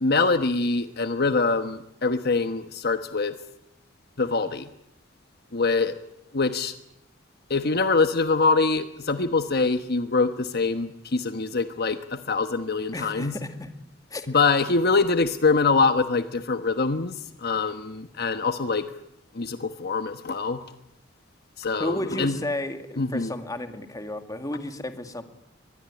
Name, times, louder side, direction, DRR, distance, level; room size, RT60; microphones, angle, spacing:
voice 1, 0.0-3.3 4.2-4.7 5.5-5.9 6.3-6.7 7.5-13.3 14.3-18.8 19.3-20.6 21.6-22.4 23.0-23.3, left 4 dB, 55° left, 9 dB, 1.2 m, -24 dB
voice 2, 12.9-13.7 14.1-14.3 21.8-25.2, left 1 dB, 20° left, 7 dB, 2.1 m, -32 dB
23.5 x 20.0 x 9.8 m, 0.84 s
head